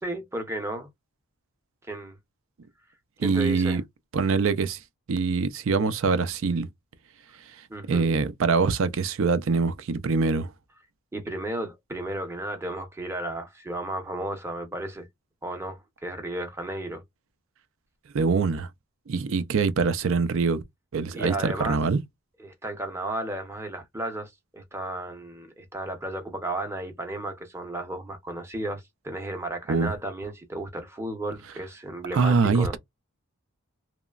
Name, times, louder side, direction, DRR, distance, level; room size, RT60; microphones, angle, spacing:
voice 1, 0.0-0.9 1.8-2.2 3.2-3.8 7.7-8.0 11.1-15.1 15.4-17.0 21.1-21.8 22.4-32.8, right 1 dB, 10° right, 0.6 m, -34 dB
voice 2, 3.2-3.8 4.1-4.8 5.1-6.7 7.9-10.5 18.1-18.7 19.1-20.6 20.9-22.0 29.7-29.9 32.1-32.8, right 4 dB, 60° right, 0.4 m, -24 dB
3.0 x 2.1 x 2.3 m
head